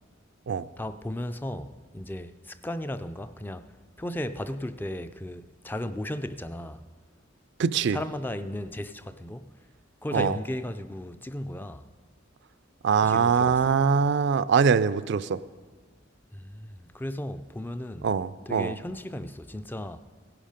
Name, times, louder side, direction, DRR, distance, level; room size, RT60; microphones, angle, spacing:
voice 1, 0.8-6.8 7.9-9.5 10.0-11.9 13.0-13.8 16.3-18.1 18.5-20.1, left 1 dB, 10° left, 0.4 m, -35 dB
voice 2, 7.6-8.0 10.1-10.4 12.8-15.4 18.0-18.8, right 6 dB, 60° right, 0.4 m, -23 dB
16.0 x 11.0 x 5.1 m
head